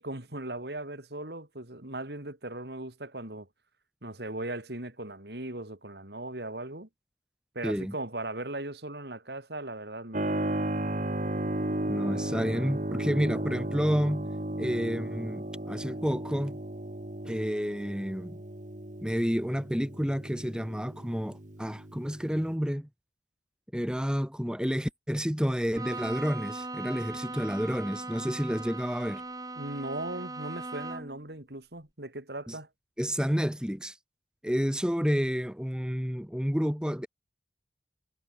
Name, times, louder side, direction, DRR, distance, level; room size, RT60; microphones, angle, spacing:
voice 1, 0.0-3.5 4.0-6.9 7.6-10.3 29.6-32.7, right 2 dB, 65° right, 3.7 m, -38 dB
voice 2, 7.6-7.9 11.9-14.3 14.6-16.6 17.2-18.4 19.0-22.9 23.7-29.2 32.5-32.6 33.0-34.0 34.4-37.1, equal, 5° right, 1.6 m, -30 dB
Keyboard (musical), 10.1-22.5, right 1 dB, 45° right, 1.6 m, -34 dB
Bowed string instrument, 25.7-31.3, right 2 dB, 20° right, 7.6 m, -39 dB
head